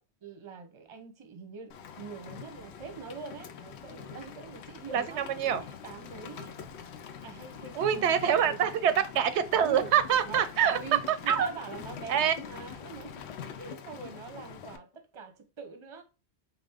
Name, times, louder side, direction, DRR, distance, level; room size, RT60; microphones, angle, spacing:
voice 1, 0.2-6.6 7.2-8.8 9.6-9.9 10.2-10.4 10.7-13.3 13.6-16.0, right 5 dB, 30° right, 0.7 m, -44 dB
Rain, 1.7-14.8, left 7 dB, 80° left, 0.8 m, -45 dB
voice 2, 7.8-10.8 11.3-11.5 12.1-12.3, right 9 dB, 90° right, 0.9 m, -25 dB
sound 1, 9.7-15.0, left 7 dB, 50° left, 0.4 m, -49 dB
4.2 x 2.5 x 3.5 m
omnidirectional pair, 1.1 m